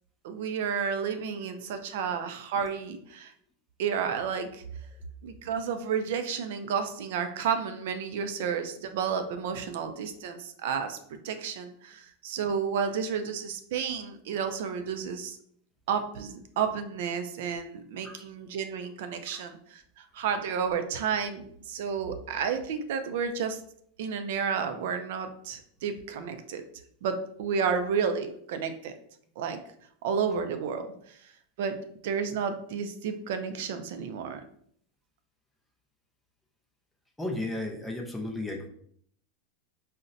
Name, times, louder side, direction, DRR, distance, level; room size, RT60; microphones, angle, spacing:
voice 1, 0.2-3.3 3.8-4.6 5.2-11.0 11.2-15.4 15.9-23.6 24.0-26.6 27.0-28.9 29.4-29.6 30.0-31.3 31.6-31.8 32.0-34.4, right 6 dB, 70° right, 8 dB, 0.3 m, -31 dB
voice 2, 37.2-38.7, left 2 dB, 5° left, 2 dB, 0.4 m, -34 dB
3.8 x 2.0 x 2.6 m, 0.65 s
supercardioid pair, 145°, 0 cm